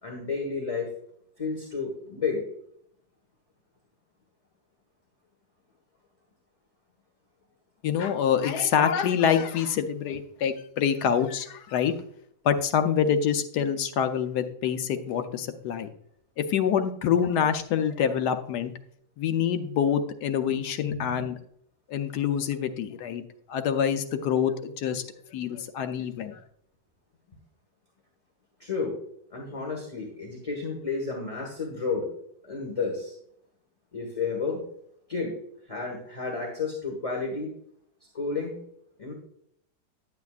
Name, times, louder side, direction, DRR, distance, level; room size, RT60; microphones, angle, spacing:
voice 1, 0.0-0.9 1.4-2.4 20.9-21.2 28.6-28.9 29.3-32.1 32.4-33.1 33.9-34.6 35.1-35.3 35.7-37.5 38.1-38.6 39.0-39.1, left 4 dB, 20° left, 0 dB, 1.4 m, -31 dB
voice 2, 7.8-11.9 12.4-15.9 16.4-18.7 19.2-21.4 21.9-23.2 23.5-25.1 25.3-26.4, left 8 dB, 85° left, 8 dB, 1.3 m, -26 dB
10.5 x 8.1 x 2.4 m, 0.68 s
omnidirectional pair, 1.7 m